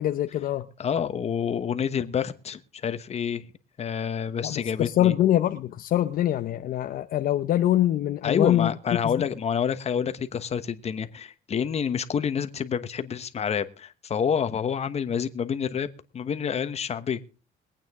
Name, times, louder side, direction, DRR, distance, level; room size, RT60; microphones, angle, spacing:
voice 1, 0.0-0.7 4.4-8.7 9.0-9.1, left 12 dB, 60° left, 0.7 m, -24 dB
voice 2, 0.8-3.5 3.8-5.1 8.2-15.9 16.1-17.2, left 7 dB, 40° left, 1.2 m, -28 dB
22.5 x 8.9 x 3.6 m
cardioid pair, 110°, 17 cm